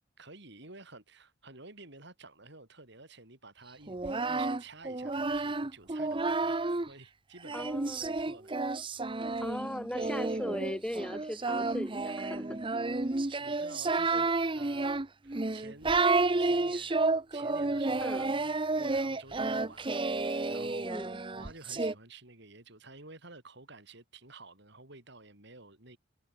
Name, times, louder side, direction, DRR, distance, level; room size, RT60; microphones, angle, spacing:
voice 1, 0.2-8.5 12.4-12.7 13.1-14.3 14.5-16.0 16.4-21.0 21.3-26.0, right 3 dB, 65° right, 7.0 m, -52 dB
Singing, 3.9-6.9 7.4-21.9, right 3 dB, 25° right, 0.9 m, -31 dB
voice 2, 7.5-8.1 9.4-12.4 14.1-14.3 18.0-18.3 20.8-21.2, equal, 5° left, 1.6 m, -38 dB
head